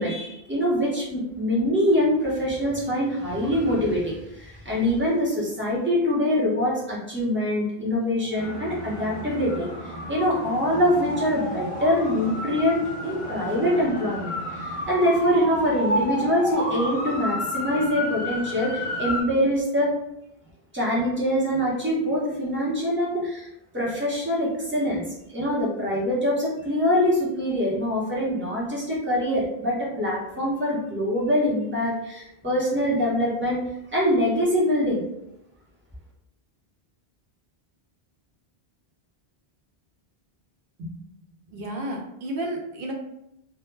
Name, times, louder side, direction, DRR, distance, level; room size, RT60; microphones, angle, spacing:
voice 1, 0.0-19.9 20.7-23.5 23.7-25.0 25.3-33.6 33.9-35.0, equal, 15° right, -6 dB, 0.7 m, -24 dB
sound 1, 8.4-19.2, equal, 45° left, 0.4 m, -31 dB
voice 2, 41.5-42.9, right 1 dB, 70° right, 0 dB, 0.8 m, -32 dB
2.2 x 2.0 x 3.2 m, 0.82 s
omnidirectional pair, 1.0 m